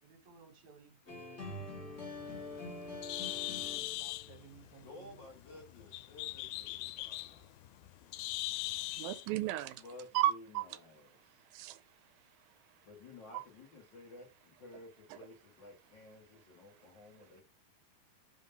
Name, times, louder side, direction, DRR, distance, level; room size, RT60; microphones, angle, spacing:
voice 1, 0.0-1.0 3.8-5.2, right 6 dB, 60° right, 2.4 m, -58 dB
sound 1, 1.1-4.3, left 2 dB, 30° left, 1.4 m, -44 dB
Bird, 2.0-9.3, left 18 dB, 90° left, 2.4 m, -41 dB
voice 2, 4.8-7.5 9.8-11.4 12.8-17.4, left 2 dB, 65° left, 1.1 m, -54 dB
voice 3, 8.9-9.8 10.1-10.7 11.5-11.8 13.3-13.4 15.1-15.2, right 14 dB, 85° right, 2.3 m, -34 dB
5.4 x 3.7 x 5.4 m
omnidirectional pair, 4.2 m